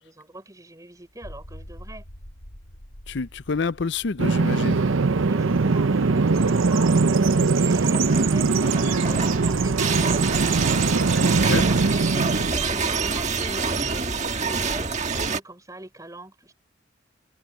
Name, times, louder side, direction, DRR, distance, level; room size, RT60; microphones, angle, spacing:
voice 1, 0.0-2.0 5.2-10.3 11.4-16.5, right 1 dB, 15° right, 4.3 m, -41 dB
sound 1, 1.0-7.5, equal, 85° left, 6.4 m, -46 dB
voice 2, 3.1-4.9 11.5-11.6, left 4 dB, 60° left, 0.6 m, -27 dB
Bird vocalization bird call bird song, 4.2-12.5, right 4 dB, 80° right, 0.7 m, -21 dB
sound 2, 7.6-15.4, right 4 dB, 35° right, 1.5 m, -27 dB
head